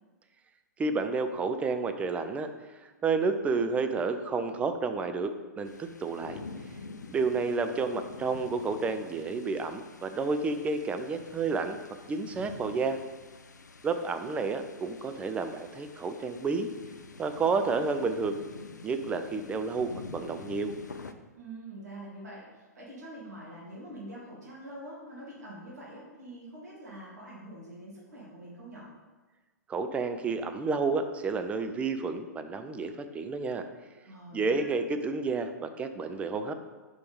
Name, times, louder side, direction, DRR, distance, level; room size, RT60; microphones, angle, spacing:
voice 1, 0.8-2.5 3.0-5.3 5.6-6.4 7.1-11.8 12.1-13.0 13.8-16.7 17.2-18.4 18.8-20.7 29.7-33.6 34.3-36.5, right 4 dB, 15° right, 8 dB, 0.4 m, -30 dB
sound 1, 5.6-21.1, left 4 dB, 80° left, 0.4 m, -47 dB
voice 2, 21.3-28.9 34.0-34.8, right 1 dB, 70° right, -5 dB, 1.7 m, -45 dB
4.8 x 4.2 x 5.2 m, 1.2 s
figure-of-eight pair, 110°, 9 cm